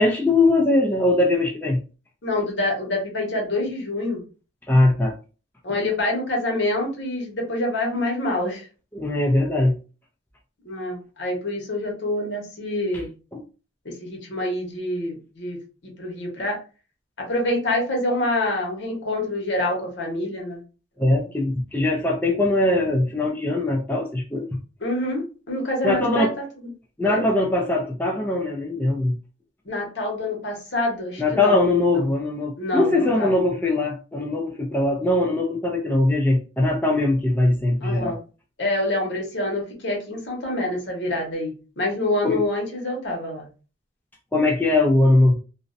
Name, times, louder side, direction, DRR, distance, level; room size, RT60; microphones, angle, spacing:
voice 1, 0.0-1.8 4.7-5.1 8.9-9.8 13.3-13.4 21.0-24.6 25.8-26.3 27.0-29.2 31.2-38.2 42.2-42.4 44.3-45.3, left 2 dB, 10° left, -1 dB, 0.3 m, -21 dB
voice 2, 2.2-4.2 5.6-8.6 10.6-13.1 13.8-15.6 15.8-16.6 17.2-20.6 21.0-21.3 24.8-26.4 27.0-27.2 29.6-31.6 31.9-32.0 32.6-33.3 37.8-38.2 38.6-43.5, left 1 dB, 75° left, 0 dB, 1.0 m, -26 dB
2.5 x 2.0 x 2.5 m, 0.35 s
head